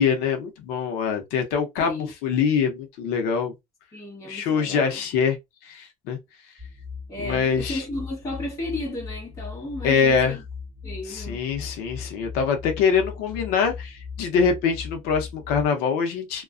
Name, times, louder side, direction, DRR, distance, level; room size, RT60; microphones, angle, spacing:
voice 1, 0.0-3.5 4.3-5.4 5.6-6.2 7.2-7.8 9.8-10.4 11.1-16.4, left 6 dB, 85° left, 0.7 m, -24 dB
voice 2, 1.8-2.1 3.9-5.0 7.1-10.4 10.8-11.4, left 2 dB, 20° left, 1.1 m, -34 dB
sound 1, 6.6-15.7, left 5 dB, 5° right, 1.2 m, -38 dB
2.4 x 2.2 x 2.3 m
cardioid pair, 170°, 15 cm